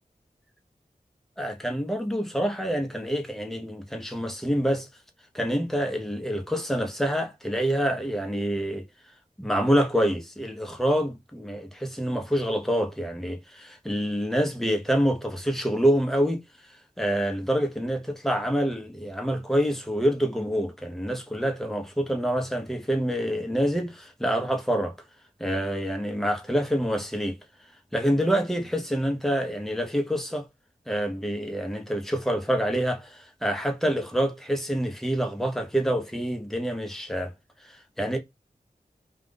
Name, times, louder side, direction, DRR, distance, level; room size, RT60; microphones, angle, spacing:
voice 1, 1.4-4.9 5.3-8.8 9.4-16.4 17.0-24.9 25.4-27.4 27.9-30.5 30.9-37.3 37.6-38.2, equal, ahead, 0.8 m, -26 dB
2.5 x 2.4 x 3.7 m
wide cardioid pair, 50°, 15 cm